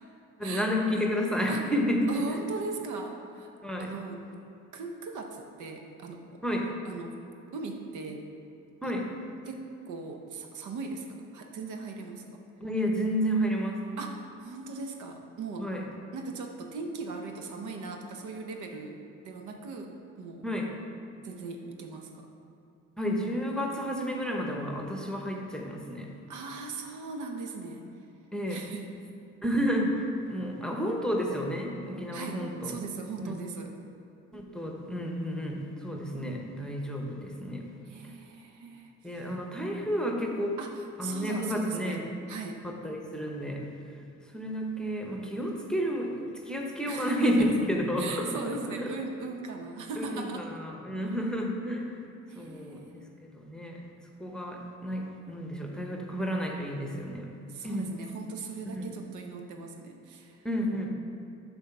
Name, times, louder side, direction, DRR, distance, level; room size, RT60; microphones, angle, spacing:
voice 1, 0.4-2.4 3.6-3.9 6.4-6.7 8.8-9.1 12.6-13.8 15.6-15.9 20.4-20.7 23.0-26.1 28.3-28.6 29.4-32.8 33.2-33.3 34.3-37.7 39.0-40.6 41.0-42.1 42.6-43.7 44.3-48.4 48.7-49.0 50.0-52.0 52.4-53.8 54.2-57.3 57.6-57.9 58.7-58.8 60.4-60.9, equal, ahead, 0 dB, 0.9 m, -31 dB
voice 2, 2.1-3.5 3.8-4.2 4.7-6.4 6.8-7.2 7.5-8.3 8.8-8.9 9.4-11.0 11.3-12.4 14.0-15.7 16.1-18.9 19.2-20.4 21.2-22.3 26.3-27.9 28.5-28.9 32.1-33.8 37.9-39.4 40.6-42.6 46.9-47.5 48.0-50.5 52.3-53.2 57.5-60.4, right 4 dB, 80° right, 3 dB, 0.9 m, -39 dB
7.1 x 4.0 x 5.9 m, 2.8 s
cardioid pair, 90°, 30 cm